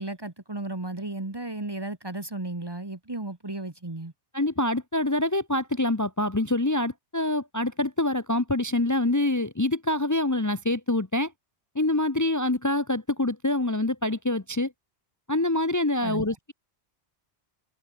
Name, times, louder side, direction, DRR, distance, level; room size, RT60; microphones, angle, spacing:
voice 1, 0.0-4.1 16.0-16.2, right 2 dB, 20° right, 1.4 m, -34 dB
voice 2, 4.3-11.3 11.7-14.7 15.3-16.5, left 1 dB, 15° left, 1.0 m, -25 dB
omnidirectional pair, 1.1 m